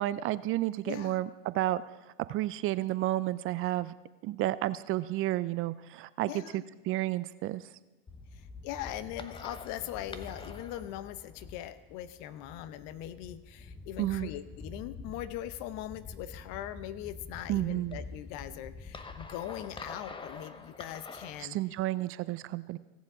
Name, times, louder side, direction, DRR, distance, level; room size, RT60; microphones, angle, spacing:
voice 1, 0.0-1.8 2.3-3.9 4.2-6.3 6.9-7.6 14.0-14.3 17.5-18.0 21.4-22.8, right 15 dB, 45° right, 16 dB, 0.5 m, -31 dB
voice 2, 0.8-1.2 6.2-6.6 8.3-21.6, left 12 dB, 60° left, 14 dB, 0.8 m, -41 dB
sound 1, 8.1-21.5, left 3 dB, 15° left, 0.8 m, -46 dB
16.5 x 7.3 x 4.9 m, 1.1 s
supercardioid pair, 100°, 31 cm